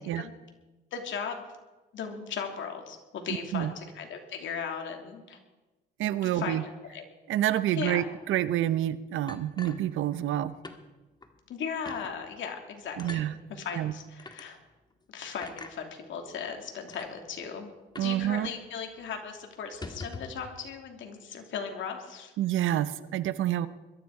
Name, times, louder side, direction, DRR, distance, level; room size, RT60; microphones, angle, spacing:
voice 1, 0.9-1.4 1.9-5.4 6.2-6.6 6.9-7.0 7.8-8.0 11.5-14.6 15.1-17.7 18.0-22.3, left 6 dB, 75° left, 3 dB, 3.0 m, -37 dB
voice 2, 6.0-6.6 7.3-10.5 13.0-13.3 13.7-13.9 18.0-18.5 22.4-23.7, right 12 dB, 80° right, 14 dB, 0.8 m, -28 dB
sound 1, 9.3-10.4 10.6-10.8 11.2-11.3 11.8-12.1 13.0-13.3 14.2-14.4 15.4-15.7 16.5-16.6 16.9-17.1 17.9-18.2 18.5-18.6 18.9-19.1 19.6-20.4, left 3 dB, 20° left, 1.7 m, -43 dB
21.5 x 13.0 x 4.9 m, 1.1 s
cardioid pair, 90°, 20 cm